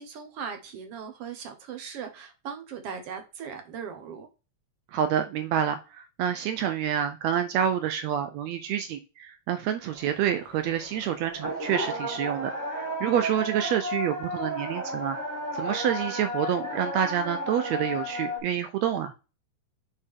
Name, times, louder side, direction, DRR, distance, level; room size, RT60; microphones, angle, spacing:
voice 1, 0.0-4.3, right 7 dB, 60° right, 1.7 m, -39 dB
voice 2, 4.9-15.2 15.5-19.1, right 9 dB, 90° right, 1.5 m, -28 dB
sound 1, 9.8-18.4, equal, 10° right, 1.1 m, -33 dB
7.0 x 4.3 x 3.6 m
omnidirectional pair, 3.8 m